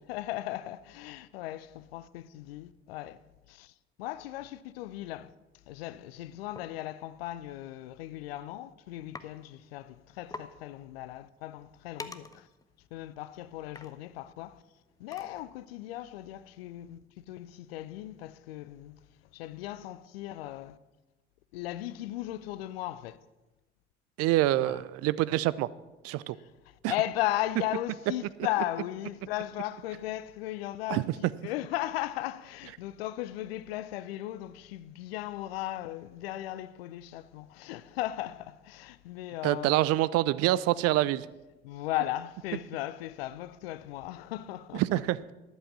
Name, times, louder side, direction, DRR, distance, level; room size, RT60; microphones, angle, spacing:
voice 1, 0.0-5.3 5.7-12.5 12.9-14.6 15.0-19.0 19.3-20.8 21.5-23.2 24.6-24.8 26.4-39.9 41.6-45.0, left 14 dB, 70° left, 0.5 m, -37 dB
sound 1, 6.6-6.7 7.8-8.0 8.3-8.6 9.1-9.3 9.6-9.7 10.0-10.1 10.3-10.5 11.0-15.7, left 3 dB, 10° left, 0.7 m, -47 dB
voice 2, 24.2-25.7 26.0-26.4 26.8-26.9 30.9-31.0 39.4-41.3 44.7-45.3, right 15 dB, 50° right, 0.5 m, -26 dB
11.0 x 7.5 x 6.1 m
figure-of-eight pair, 50°, 31 cm